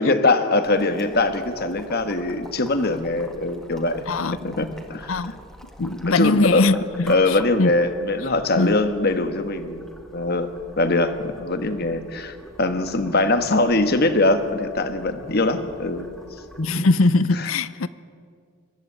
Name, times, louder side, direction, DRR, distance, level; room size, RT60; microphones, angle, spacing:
voice 1, 0.0-4.1 4.4-5.1 5.8-6.8 7.1-9.8 10.1-10.5 10.8-16.1 16.6-16.7 17.3-17.5, left 2 dB, 50° left, 9 dB, 1.5 m, -22 dB
Boiling, 0.6-16.7, equal, ahead, 1.9 m, -45 dB
voice 2, 5.8-7.7 8.6-8.7 16.6-17.9, left 3 dB, 75° left, 16 dB, 0.7 m, -21 dB
22.5 x 14.0 x 9.6 m, 2.2 s
head